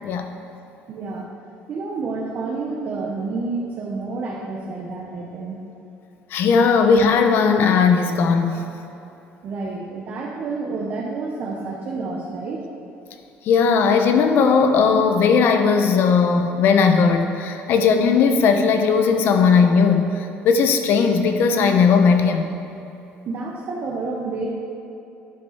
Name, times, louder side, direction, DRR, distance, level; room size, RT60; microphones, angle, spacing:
voice 1, 0.9-1.3 1.7-5.6 9.4-12.6 23.2-24.5, right 3 dB, 45° right, -2 dB, 1.0 m, -29 dB
voice 2, 6.3-8.6 13.5-22.5, left 5 dB, 60° left, 6 dB, 0.9 m, -17 dB
11.0 x 5.3 x 5.8 m, 2.9 s
cardioid pair, 135°, 4 cm